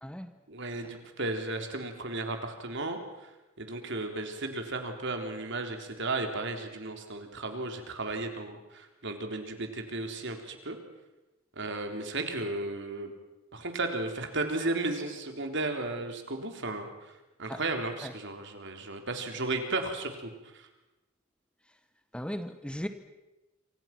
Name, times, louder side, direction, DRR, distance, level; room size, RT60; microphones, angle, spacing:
voice 1, 0.5-3.0 3.6-10.8 11.6-13.1 13.5-16.9 17.4-20.7, right 2 dB, 60° right, 5 dB, 3.7 m, -34 dB
voice 2, 22.1-22.9, equal, 5° left, 9 dB, 1.1 m, -36 dB
27.5 x 26.0 x 6.1 m, 1.0 s
head